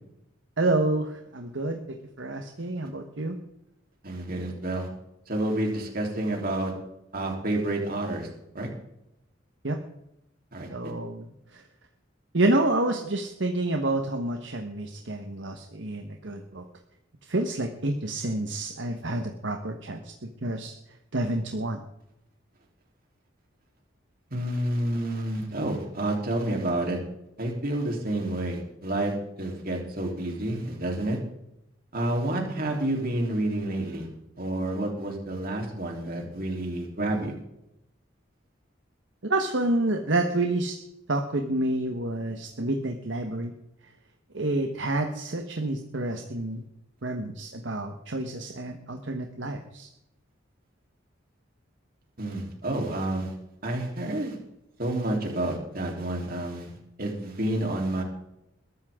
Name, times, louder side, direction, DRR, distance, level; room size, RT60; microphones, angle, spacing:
voice 1, 0.6-3.4 9.6-9.8 10.7-11.6 12.3-16.6 17.3-20.7 21.1-21.8 39.2-40.8 41.1-43.5 44.3-46.6 47.0-49.9, right 2 dB, 65° right, 4 dB, 1.3 m, -28 dB
voice 2, 4.0-4.9 5.3-6.7 7.1-8.3 8.5-8.7 10.5-10.7 24.3-27.0 27.4-31.2 31.9-34.1 34.4-37.3 52.2-53.3 53.6-54.4 54.8-56.7 57.0-58.0, right 1 dB, 50° right, 1 dB, 3.6 m, -29 dB
21.5 x 13.0 x 3.7 m, 0.85 s
head